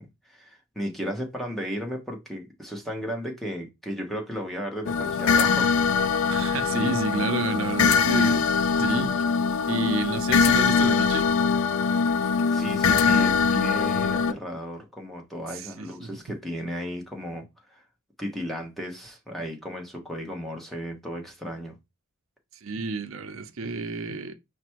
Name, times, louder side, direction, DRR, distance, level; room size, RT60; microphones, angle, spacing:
voice 1, 0.0-5.7 12.5-17.8 18.2-21.7, equal, ahead, 1.1 m, -34 dB
sound 1, 4.9-14.3, left 5 dB, 85° left, 0.4 m, -22 dB
voice 2, 6.3-9.2 9.7-11.3 15.5-16.2 22.5-24.3, right 3 dB, 80° right, 0.6 m, -31 dB
5.0 x 2.2 x 4.5 m
head